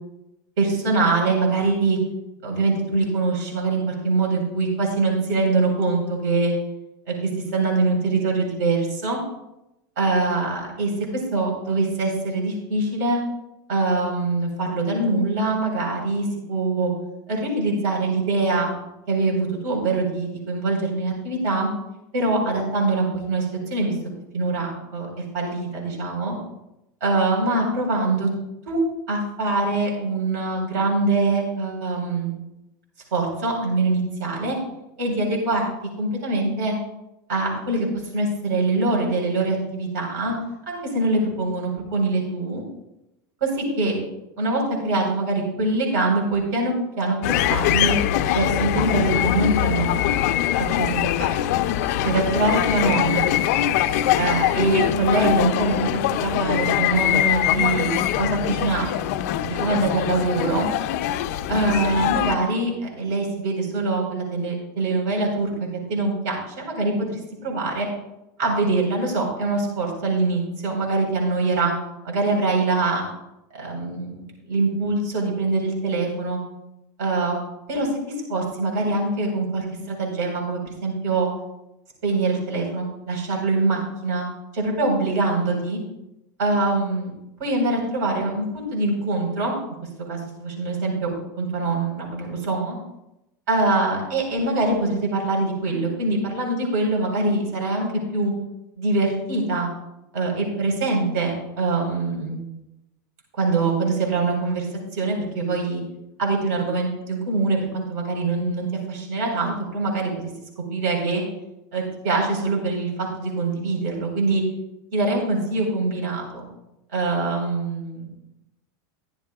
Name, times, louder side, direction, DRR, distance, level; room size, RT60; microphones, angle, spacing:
voice 1, 0.6-2.0 2.4-6.5 7.1-9.2 10.0-13.2 13.7-16.9 17.3-18.7 19.1-21.7 22.1-24.0 24.3-25.1 25.3-26.3 27.0-28.3 28.6-28.8 29.1-32.3 33.1-34.6 35.0-35.7 36.0-36.7 37.3-37.9 38.1-40.3 40.7-42.6 43.4-44.0 44.4-48.0 48.3-50.1 50.7-51.3 52.0-53.2 54.2-59.0 59.4-60.7 61.5-66.9 67.4-67.9 68.4-71.7 72.0-73.0 73.5-76.4 77.0-77.4 77.7-81.3 82.0-84.2 84.5-85.8 86.4-87.1 87.4-89.5 90.0-91.1 91.4-92.8 93.5-98.3 98.8-99.7 100.1-102.4 103.4-104.7 104.9-105.8 106.2-110.3 110.7-111.2 111.7-114.4 114.9-116.4 116.9-118.1, right 3 dB, 55° right, 0 dB, 4.2 m, -23 dB
sound 1, 47.2-62.3, left 12 dB, 50° left, 0.4 m, -23 dB
14.0 x 11.0 x 2.4 m, 0.90 s
supercardioid pair, 175°, 10 cm